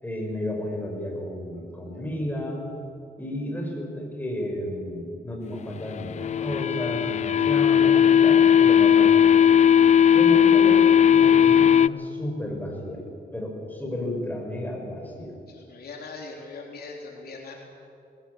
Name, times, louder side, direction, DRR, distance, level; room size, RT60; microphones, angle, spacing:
voice 1, 0.0-2.6 3.2-9.1 10.1-13.0 13.3-15.3, left 1 dB, 10° left, 0 dB, 5.7 m, -32 dB
sound 1, 5.9-11.9, left 8 dB, 45° left, 0.4 m, -17 dB
voice 2, 15.5-17.6, left 3 dB, 70° left, 0 dB, 3.4 m, -40 dB
19.5 x 17.5 x 8.4 m, 2.5 s
cardioid pair, 95°, 16 cm